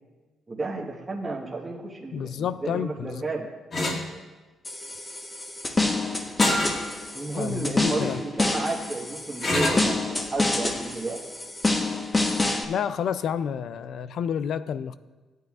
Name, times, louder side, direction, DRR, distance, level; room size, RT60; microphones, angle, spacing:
voice 1, 0.5-3.5 7.1-11.2, right 3 dB, 25° right, -1 dB, 1.3 m, -32 dB
voice 2, 2.1-3.2 7.4-8.2 12.7-14.9, left 8 dB, 70° left, 14 dB, 0.4 m, -29 dB
sound 1, 3.7-4.0 6.4-6.8 7.3-7.4 9.4-9.9, left 1 dB, 45° left, 2.1 m, -25 dB
sound 2, 4.6-12.6, left 2 dB, 25° left, 1.1 m, -27 dB
15.0 x 9.3 x 2.4 m, 1.3 s
cardioid pair, 90°, 0 cm